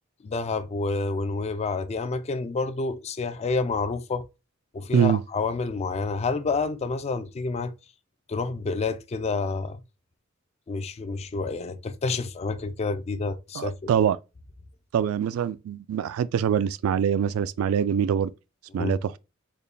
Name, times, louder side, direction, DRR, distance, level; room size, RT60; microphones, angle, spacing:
voice 1, 0.2-4.2 4.7-7.7 8.3-9.8 10.7-14.0 18.7-19.0, left 3 dB, 30° left, 0.3 m, -29 dB
voice 2, 13.6-14.2 14.9-18.3 18.7-19.1, right 8 dB, 90° right, 0.3 m, -24 dB
3.9 x 2.2 x 3.3 m
head